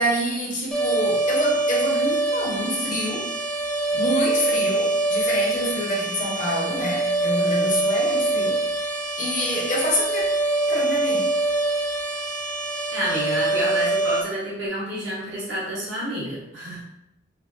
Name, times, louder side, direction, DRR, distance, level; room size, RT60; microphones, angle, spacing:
voice 1, 0.0-3.3 3.9-8.6 9.2-10.2 10.7-11.3, equal, 45° left, -2 dB, 0.8 m, -26 dB
sound 1, 0.7-14.2, right 2 dB, 5° left, 0.3 m, -24 dB
voice 2, 7.4-7.7 12.9-16.8, right 1 dB, 70° right, -8 dB, 1.1 m, -29 dB
3.0 x 2.6 x 2.5 m, 0.81 s
head